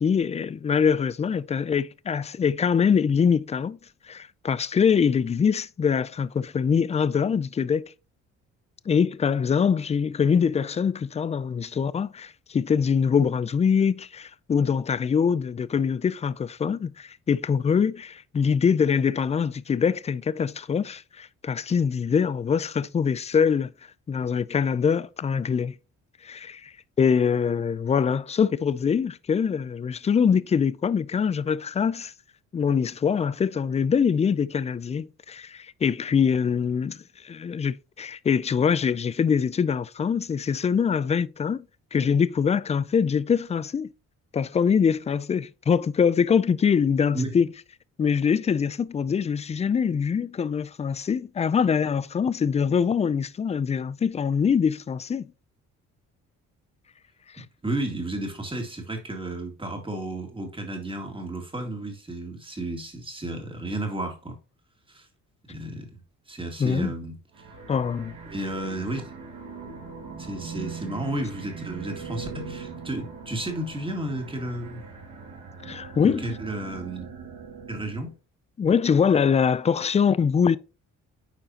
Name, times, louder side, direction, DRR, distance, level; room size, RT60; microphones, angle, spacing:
voice 1, 0.0-3.8 4.1-7.9 8.9-23.7 24.1-25.7 26.2-26.7 27.0-32.1 32.5-37.0 37.2-41.6 41.9-43.9 44.3-47.5 48.0-55.2 57.4-57.5 66.6-66.9 67.7-68.1 75.6-76.3 78.6-80.6, left 6 dB, 25° left, 0.3 m, -23 dB
voice 2, 57.6-64.4 64.9-65.1 65.5-65.9 66.3-67.5 68.3-69.0 70.2-74.8 75.6-75.8 76.0-77.1 77.7-78.2, right 1 dB, 15° right, 2.1 m, -32 dB
sound 1, 67.3-78.1, right 5 dB, 75° right, 2.1 m, -40 dB
9.0 x 4.7 x 2.9 m
cardioid pair, 90°, 30 cm